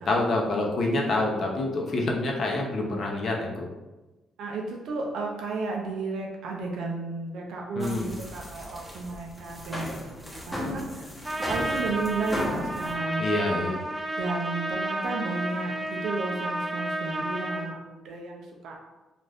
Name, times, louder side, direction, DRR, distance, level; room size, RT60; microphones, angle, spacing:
voice 1, 0.1-3.7 7.8-8.1 13.2-13.8, left 2 dB, 50° left, 0 dB, 0.7 m, -27 dB
voice 2, 4.4-11.1 11.5-13.7 14.2-18.8, right 3 dB, 75° right, 0 dB, 0.5 m, -33 dB
sound 1, 7.8-12.9, left 1 dB, 5° left, 0.9 m, -36 dB
Trumpet, 11.2-17.7, right 1 dB, 20° right, 0.4 m, -31 dB
2.5 x 2.4 x 3.4 m, 1.1 s
cardioid pair, 90°, 0 cm